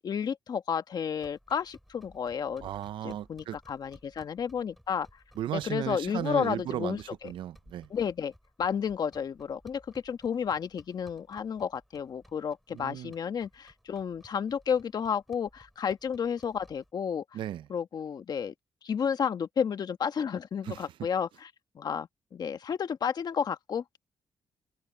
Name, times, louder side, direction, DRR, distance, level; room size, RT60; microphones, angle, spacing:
voice 1, 0.0-2.7 3.0-5.1 5.5-7.3 7.9-8.3 8.6-17.2 17.7-18.5 18.8-21.5 21.7-23.8, left 7 dB, 55° left, 1.4 m, -32 dB
sound 1, 1.1-16.9, equal, ahead, 7.1 m, -59 dB
voice 2, 2.6-3.6 5.4-7.9 12.7-13.1 17.3-17.7 20.6-20.8, right 12 dB, 80° right, 0.5 m, -35 dB
open air
cardioid pair, 110°, 8 cm